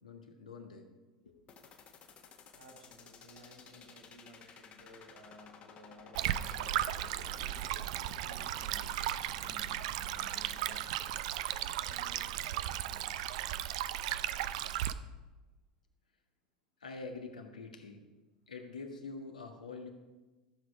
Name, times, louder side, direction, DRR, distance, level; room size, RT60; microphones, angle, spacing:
voice 1, 0.0-0.9 1.2-1.4 11.3-11.5 16.8-18.0 18.5-19.9, left 4 dB, 75° left, 3 dB, 1.6 m, -46 dB
sound 1, 1.5-11.5, left 6 dB, 35° left, 1.6 m, -55 dB
voice 2, 2.6-7.5 8.2-10.9 11.5-13.2, equal, 90° right, -3 dB, 3.5 m, -57 dB
Stream, 6.1-14.9, right 12 dB, 55° right, 0.5 m, -36 dB
14.5 x 7.9 x 4.8 m, 1.2 s
figure-of-eight pair, 80°, 4 cm